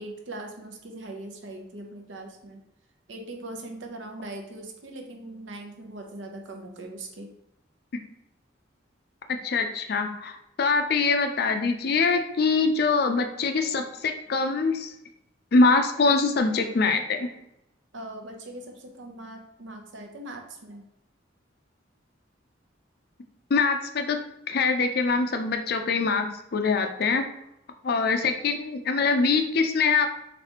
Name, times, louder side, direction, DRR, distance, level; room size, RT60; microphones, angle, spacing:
voice 1, 0.0-2.6 3.1-7.3 17.9-20.8, right 2 dB, 75° right, 3 dB, 0.7 m, -40 dB
voice 2, 9.3-14.9 15.5-17.3 23.5-24.2 24.5-27.2 27.8-30.1, left 4 dB, 55° left, 6 dB, 0.4 m, -24 dB
4.1 x 3.3 x 2.8 m, 0.82 s
head